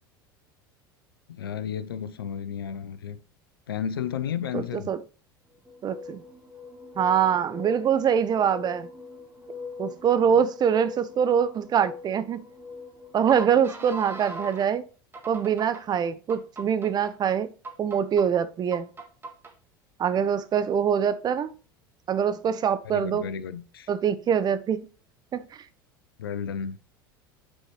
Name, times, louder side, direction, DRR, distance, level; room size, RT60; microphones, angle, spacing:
voice 1, 1.3-3.2 3.7-4.9 10.3-10.4 22.8-23.9 26.2-26.8, left 8 dB, 85° left, 0.5 m, -33 dB
voice 2, 4.5-5.0 5.8-6.2 7.0-8.9 9.8-12.4 13.1-14.8 15.3-17.5 17.8-18.9 20.0-21.5 22.1-23.2 23.9-24.8 25.3-25.4, right 8 dB, 35° right, 0.7 m, -24 dB
sound 1, 5.7-14.7 15.1-15.8 16.3-17.1 17.6-18.2 18.7-19.5, left 1 dB, 20° right, 1.7 m, -41 dB
8.6 x 4.6 x 3.0 m
hypercardioid pair, 80°, 12 cm